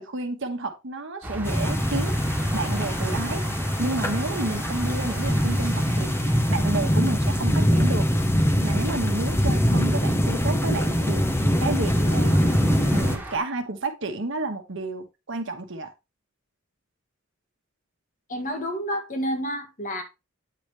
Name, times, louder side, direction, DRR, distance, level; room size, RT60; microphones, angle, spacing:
voice 1, 0.0-2.2 2.5-3.4 3.8-8.1 8.6-11.3 11.6-12.6 12.9-15.9, right 2 dB, 65° right, 1.1 m, -31 dB
sound 1, 1.2-13.4, right 1 dB, 10° right, 1.6 m, -39 dB
sound 2, 1.4-13.2, equal, 10° left, 0.8 m, -23 dB
voice 2, 18.3-20.0, equal, 40° left, 1.6 m, -29 dB
8.7 x 5.0 x 3.2 m
head